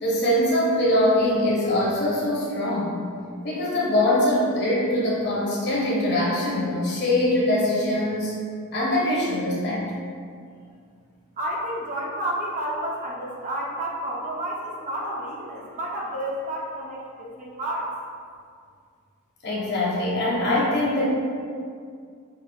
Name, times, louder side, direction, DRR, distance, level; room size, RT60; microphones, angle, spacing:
voice 1, 0.0-3.0 3.4-8.4 8.7-9.8 19.4-21.0, left 1 dB, 50° left, -5 dB, 0.9 m, -23 dB
voice 2, 11.4-17.9, right 1 dB, 35° right, -4 dB, 0.6 m, -30 dB
5.2 x 2.4 x 2.3 m, 2.2 s
head